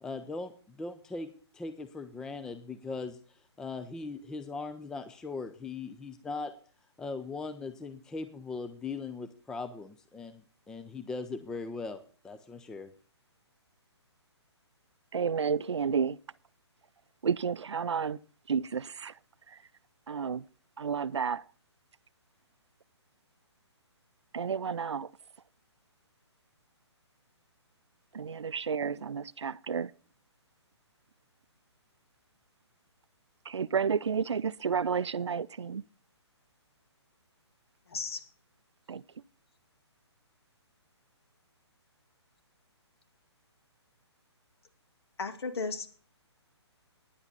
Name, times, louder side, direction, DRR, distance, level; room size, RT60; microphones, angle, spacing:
voice 1, 0.0-6.5 7.0-12.9, left 3 dB, 5° left, 0.4 m, -39 dB
voice 2, 15.1-16.2 17.2-18.2 18.5-19.1 20.1-20.4 20.8-21.4 24.3-25.1 28.1-29.9 33.5-35.8 38.9-39.0, right 6 dB, 70° right, 0.5 m, -31 dB
voice 3, 37.9-38.2 45.2-45.9, left 4 dB, 60° left, 2.2 m, -34 dB
10.0 x 8.0 x 7.0 m
figure-of-eight pair, 135°, 15 cm